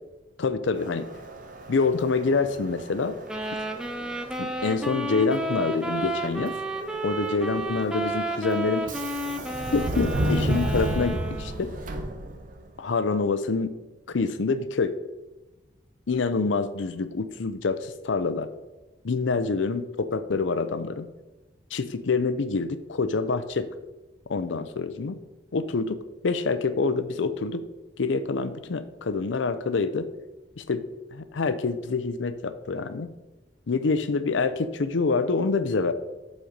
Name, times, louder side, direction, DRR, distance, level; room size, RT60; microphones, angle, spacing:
voice 1, 0.4-1.1 1.7-3.2 4.4-6.5 7.0-8.8 9.7-11.7 12.8-13.7 14.1-15.0 16.1-18.5 19.0-21.1 21.7-23.7 24.3-25.2 25.5-27.6 28.0-30.1 30.6-30.8 31.1-33.1 33.7-35.9, left 4 dB, 85° left, 12 dB, 0.6 m, -26 dB
Subway metro underground, 0.8-12.7, right 1 dB, 45° right, 0.8 m, -34 dB
sound 1, 3.3-11.7, right 1 dB, 5° right, 0.5 m, -31 dB
7.8 x 4.2 x 5.1 m, 1.1 s
head